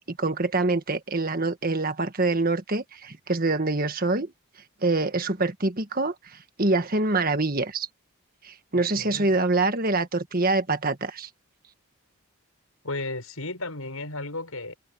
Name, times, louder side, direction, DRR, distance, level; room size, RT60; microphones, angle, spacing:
voice 1, 0.0-4.3 4.8-6.1 6.6-7.9 8.4-11.3, right 3 dB, 40° right, 1.6 m, -25 dB
voice 2, 8.7-9.3 12.8-14.7, left 2 dB, 75° left, 6.7 m, -34 dB
head